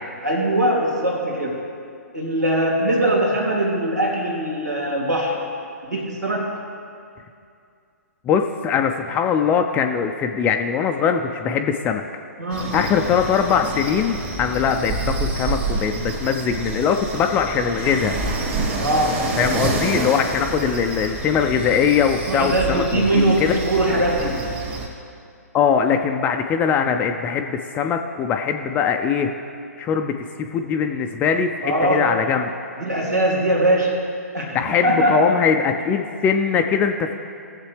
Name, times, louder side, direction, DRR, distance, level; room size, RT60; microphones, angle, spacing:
voice 1, 0.2-1.6 2.1-5.4 5.8-6.5 12.4-12.8 18.8-19.2 22.3-24.4 31.6-32.1 32.8-34.0 34.3-35.2, right 1 dB, 90° right, -2 dB, 2.7 m, -21 dB
voice 2, 8.3-12.0 12.7-18.1 19.4-23.6 25.5-29.3 29.8-32.5 34.5-37.1, left 7 dB, 20° left, 5 dB, 0.5 m, -21 dB
sound 1, 12.5-24.9, right 3 dB, 35° right, 2.3 m, -28 dB
18.5 x 7.4 x 3.4 m, 2.4 s
figure-of-eight pair, 130°, 9 cm